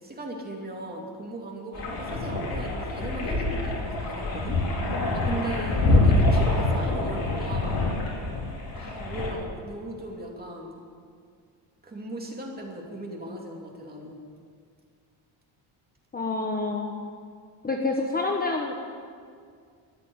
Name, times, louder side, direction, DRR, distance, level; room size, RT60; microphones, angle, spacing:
voice 1, 0.0-4.6 4.9-7.8 8.7-10.8 11.8-14.2, right 1 dB, 20° right, -1 dB, 2.7 m, -37 dB
sound 1, 1.7-9.3, left 2 dB, 50° left, 4.1 m, -25 dB
voice 2, 16.1-16.9 17.6-18.7, left 3 dB, 20° left, 2 dB, 1.1 m, -28 dB
14.0 x 10.5 x 9.3 m, 2.1 s
cardioid pair, 145°, 46 cm